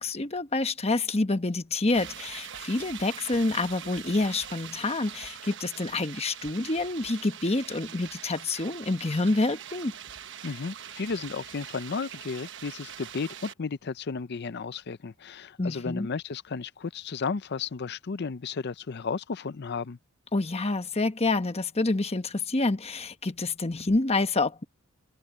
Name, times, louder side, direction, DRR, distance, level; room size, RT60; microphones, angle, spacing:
voice 1, 0.0-9.9 15.6-16.1 20.3-24.6, left 2 dB, 30° left, 1.1 m, -27 dB
sound 1, 1.9-13.5, right 9 dB, 60° right, 1.1 m, -43 dB
voice 2, 10.4-20.0, left 5 dB, 50° left, 0.5 m, -33 dB
open air
head